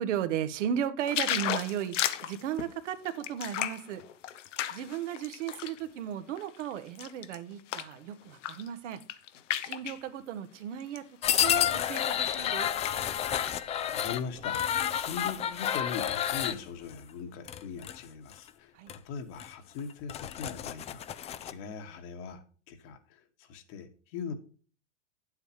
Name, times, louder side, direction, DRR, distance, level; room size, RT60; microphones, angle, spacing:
voice 1, 0.0-4.0 4.7-9.0 9.6-11.0 11.4-12.7 18.7-18.9, right 9 dB, 80° right, 10 dB, 1.2 m, -35 dB
sound 1, 1.1-5.8 6.3-8.0 8.3-8.7 8.9-10.0 10.8-11.0 11.4-12.5 12.8-12.9 13.2-14.0 14.5-14.6, left 11 dB, 90° left, 0.9 m, -34 dB
sound 2, 11.2-16.6 17.5-18.0 18.3-18.5 18.9-19.0 19.4-19.5 19.9-21.5, left 10 dB, 20° left, 0.3 m, -30 dB
voice 2, 13.9-24.3, left 6 dB, 60° left, 5 dB, 1.9 m, -41 dB
9.2 x 8.0 x 3.1 m, 0.40 s
supercardioid pair, 125°, 36 cm